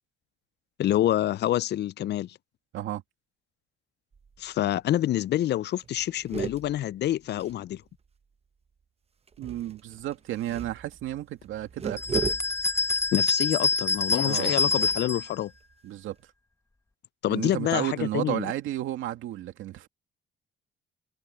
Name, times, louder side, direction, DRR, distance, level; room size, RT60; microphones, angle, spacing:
voice 1, 0.8-2.4 4.4-7.8 13.1-15.5 17.2-18.5, left 13 dB, 60° left, 0.4 m, -27 dB
sound 1, 4.1-4.6 4.9-5.0 5.3-5.5 5.8-8.2 9.3-16.2, right 6 dB, 30° right, 0.8 m, -39 dB
voice 2, 9.4-12.3 14.2-14.5 15.8-16.2 17.3-19.9, right 13 dB, 85° right, 2.3 m, -32 dB
sound 2, 12.0-15.3, left 3 dB, 15° left, 1.0 m, -26 dB
cardioid pair, 90°, 20 cm